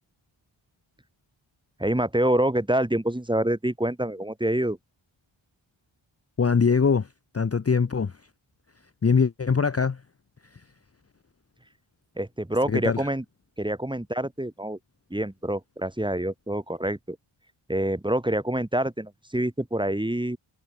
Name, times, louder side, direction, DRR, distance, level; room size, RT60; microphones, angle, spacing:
voice 1, 1.8-4.8 12.2-13.2 13.6-14.8 15.1-17.2 17.7-20.4, right 1 dB, 10° right, 1.8 m, -26 dB
voice 2, 6.4-7.1 7.3-8.1 9.0-10.0 12.7-13.1, left 5 dB, 30° left, 0.8 m, -22 dB
cardioid pair, 50°, 50 cm